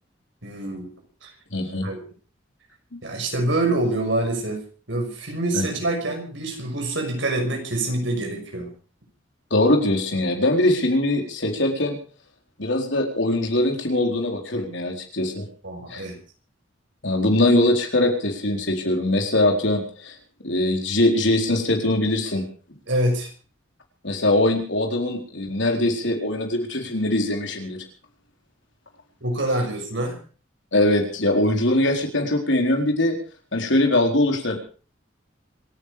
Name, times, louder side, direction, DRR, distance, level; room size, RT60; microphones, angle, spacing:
voice 1, 0.4-0.9 1.2-1.3 1.8-2.0 3.0-4.6 4.9-8.7 15.6-16.2 22.9-23.3 29.2-30.2, right 1 dB, 65° right, 3 dB, 6.0 m, -25 dB
voice 2, 1.5-1.9 5.5-5.7 9.5-12.0 12.6-15.5 15.9-16.0 17.0-20.1 20.4-22.5 24.0-27.8 30.7-33.2 33.5-34.6, left 1 dB, 65° left, 3 dB, 4.3 m, -22 dB
26.5 x 9.8 x 5.1 m, 0.40 s
head